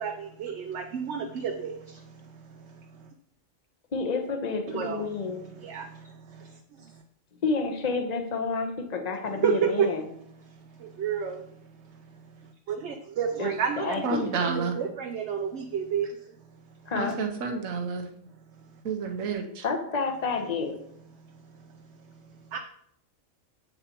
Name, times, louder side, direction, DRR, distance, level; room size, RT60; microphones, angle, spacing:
voice 1, 0.0-3.1 4.7-7.0 9.4-9.9 10.5-11.5 11.8-16.2 16.8-16.9 21.1-22.6, right 7 dB, 65° right, 5 dB, 0.9 m, -32 dB
voice 2, 3.9-5.5 7.4-10.1 13.4-13.5 13.8-14.3 16.9-17.2 19.6-20.8, left 4 dB, 35° left, 5 dB, 0.9 m, -29 dB
voice 3, 14.0-14.8 16.9-18.1 18.8-19.6, right 4 dB, 80° right, 4 dB, 1.3 m, -30 dB
8.1 x 6.9 x 3.0 m, 0.69 s
omnidirectional pair, 1.4 m